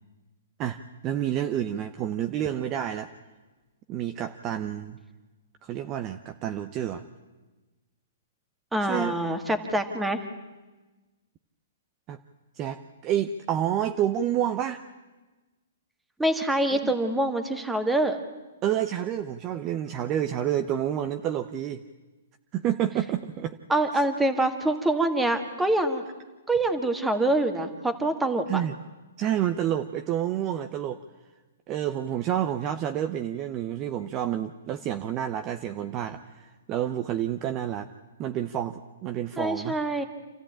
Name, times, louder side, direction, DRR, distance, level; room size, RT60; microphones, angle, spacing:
voice 1, 0.6-3.1 3.9-5.0 5.6-7.0 8.9-9.2 12.1-12.2 12.6-14.8 16.8-16.9 18.6-21.8 22.5-23.6 28.5-28.8 29.2-31.0 31.7-37.9 38.2-39.8, right 10 dB, 30° right, 8 dB, 0.8 m, -29 dB
voice 2, 8.7-10.2 16.2-18.2 23.7-26.1 26.5-28.6 39.4-40.0, right 1 dB, 5° right, 7 dB, 1.8 m, -25 dB
27.5 x 14.0 x 8.8 m, 1.2 s
hypercardioid pair, 140°, 0 cm